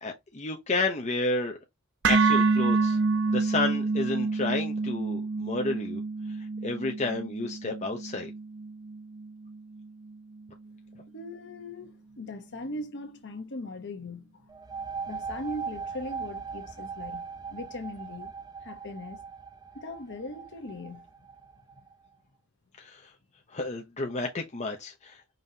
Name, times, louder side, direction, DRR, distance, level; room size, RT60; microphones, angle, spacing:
voice 1, 0.0-1.6 2.1-3.0 3.3-6.0 6.6-8.3 22.8-23.1 23.5-25.2, left 3 dB, 35° left, 0.7 m, -31 dB
sound 1, 2.0-10.2, right 4 dB, 60° right, 0.6 m, -28 dB
voice 2, 11.1-14.4 15.1-18.3 18.6-19.2 19.7-21.0, left 1 dB, 55° left, 1.0 m, -39 dB
sound 2, 14.5-21.9, right 5 dB, 20° right, 0.5 m, -40 dB
5.3 x 3.0 x 2.7 m
head